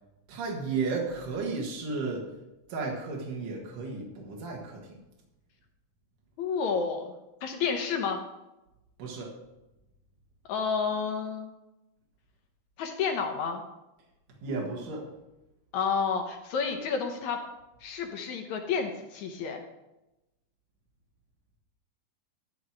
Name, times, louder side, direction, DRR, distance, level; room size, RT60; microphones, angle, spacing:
voice 1, 0.3-2.2 2.7-5.0 9.0-9.3 14.4-15.1, right 4 dB, 75° right, -1 dB, 3.2 m, -33 dB
voice 2, 6.4-7.1 7.4-8.2 10.5-11.5 12.8-13.6 15.7-17.4 17.8-19.6, left 5 dB, 70° left, 4 dB, 2.1 m, -30 dB
13.0 x 4.7 x 7.5 m, 0.96 s
omnidirectional pair, 3.9 m